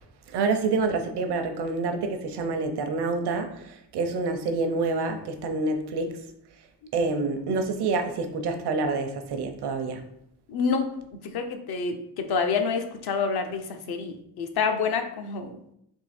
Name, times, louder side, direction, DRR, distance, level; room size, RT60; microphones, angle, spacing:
voice 1, 0.3-3.5 3.9-6.1 6.9-10.0, right 3 dB, 70° right, 6 dB, 0.8 m, -27 dB
voice 2, 10.5-15.6, left 5 dB, 65° left, 6 dB, 0.7 m, -28 dB
3.7 x 2.8 x 4.2 m, 0.75 s
cardioid pair, 90°, 41 cm